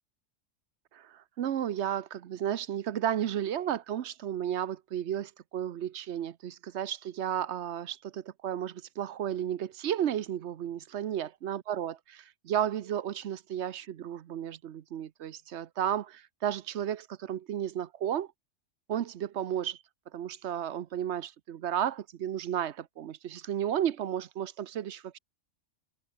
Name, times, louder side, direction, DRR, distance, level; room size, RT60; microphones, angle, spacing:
voice 1, 0.9-18.3 18.9-19.8 20.1-25.2, right 10 dB, 65° right, 1.0 m, -33 dB
omnidirectional pair, 1.3 m